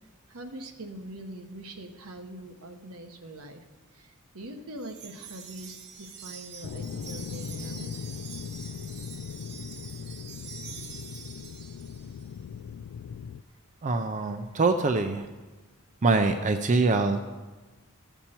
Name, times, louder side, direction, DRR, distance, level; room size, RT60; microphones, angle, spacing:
voice 1, 0.3-3.6 3.9-8.0, right 1 dB, 75° right, 5 dB, 1.1 m, -43 dB
Wind chime, 4.8-12.3, right 7 dB, 50° right, 0.9 m, -45 dB
sound 1, 6.6-13.4, left 7 dB, 80° left, 0.3 m, -39 dB
voice 2, 13.8-15.3 16.0-17.2, right 3 dB, 35° right, 7 dB, 0.5 m, -24 dB
15.0 x 7.0 x 4.4 m, 1.3 s
head